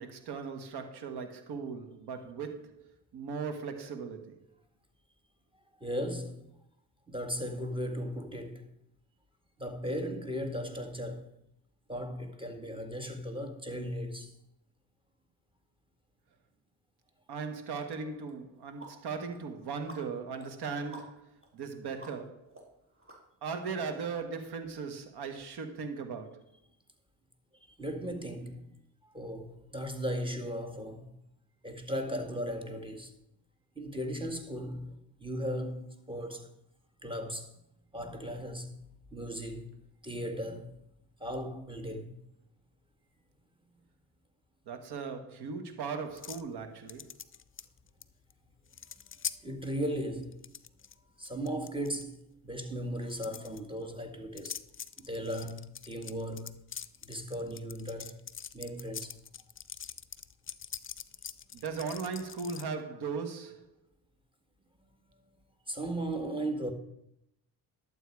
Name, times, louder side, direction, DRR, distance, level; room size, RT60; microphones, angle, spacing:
voice 1, 0.0-4.4 17.3-22.5 23.4-26.4 44.7-47.1 61.5-63.7, right 5 dB, 80° right, 1.6 m, -38 dB
voice 2, 5.8-6.5 7.1-8.7 9.6-11.3 11.9-14.3 27.8-28.8 29.0-31.1 31.6-33.1 33.8-36.5 37.0-37.5 37.9-38.8 39.1-39.8 40.0-40.8 41.2-42.2 49.4-50.4 51.2-54.6 55.0-56.5 57.0-58.2 58.5-59.2 65.7-66.7, equal, 15° right, 2.0 m, -37 dB
sound 1, 18.3-23.7, right 1 dB, 35° right, 3.5 m, -54 dB
sound 2, 46.2-46.5 46.9-48.0 48.3-48.4 48.7-49.4 50.2-50.9 51.3-52.0 53.0-53.6 54.4-62.7, left 8 dB, 35° left, 0.6 m, -43 dB
11.5 x 7.8 x 4.8 m
cardioid pair, 75°, 39 cm